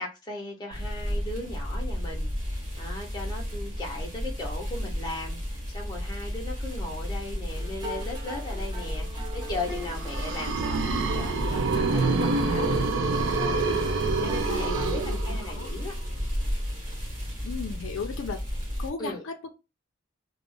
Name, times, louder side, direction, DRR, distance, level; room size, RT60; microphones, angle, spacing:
voice 1, 0.0-12.7 14.2-15.9 19.0-19.2, left 2 dB, 20° left, 0.7 m, -37 dB
sound 1, 0.7-18.9, equal, 40° right, 1.0 m, -33 dB
sound 2, 7.5-15.1, right 1 dB, 20° right, 0.6 m, -40 dB
sound 3, 9.8-15.7, right 3 dB, 65° right, 0.5 m, -27 dB
voice 2, 14.1-15.8 17.4-18.4 18.8-19.5, left 5 dB, 75° left, 0.4 m, -36 dB
2.3 x 2.0 x 3.7 m
head